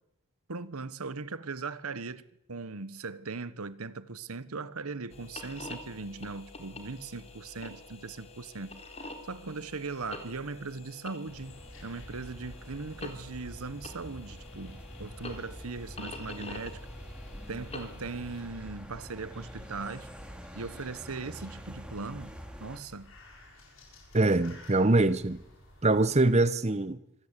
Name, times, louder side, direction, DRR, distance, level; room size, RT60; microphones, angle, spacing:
voice 1, 0.5-8.8 9.2-16.8 17.5-20.1 20.5-22.3 22.6-23.1, right 4 dB, 90° right, 1.2 m, -39 dB
sound 1, 5.1-18.4, left 2 dB, 30° left, 3.5 m, -47 dB
sound 2, 11.3-26.5, left 1 dB, 65° left, 7.2 m, -54 dB
sound 3, 11.3-22.8, equal, 5° right, 2.3 m, -46 dB
voice 2, 24.1-25.4 25.8-27.0, right 2 dB, 30° right, 0.8 m, -23 dB
25.5 x 17.5 x 8.3 m
head